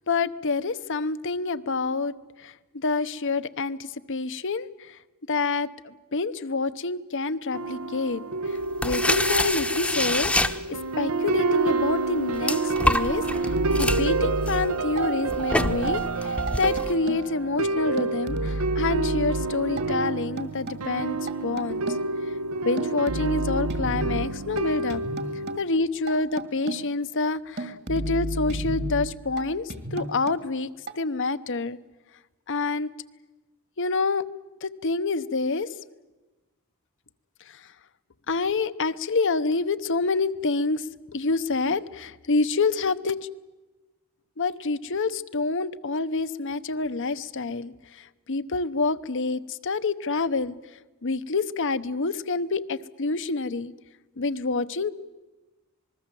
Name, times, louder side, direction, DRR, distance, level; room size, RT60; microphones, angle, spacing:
voice 1, 0.1-2.1 2.4-5.0 5.3-8.2 8.5-10.5 11.0-13.2 13.8-21.8 22.6-25.0 25.6-30.7 31.0-31.8 32.5-32.9 33.8-34.2 34.6-35.7 37.5-37.6 38.3-40.9 41.1-43.2 44.4-50.6 51.0-53.7 54.2-54.9, left 3 dB, 60° left, 13 dB, 0.9 m, -27 dB
sound 1, 7.5-25.6, right 3 dB, 75° right, 0.9 m, -28 dB
sound 2, 8.6-11.1 11.7-16.9, left 1 dB, 5° left, 0.9 m, -27 dB
sound 3, 13.5-15.0 15.6-16.1 16.5-17.4 18.0-19.8 20.4-20.8 21.3-22.2 22.8-24.6 24.9-25.6 26.1-27.0 27.6-29.4 29.7-30.4 30.9-31.0, right 1 dB, 50° right, 2.0 m, -32 dB
26.5 x 20.5 x 7.7 m, 1.1 s
head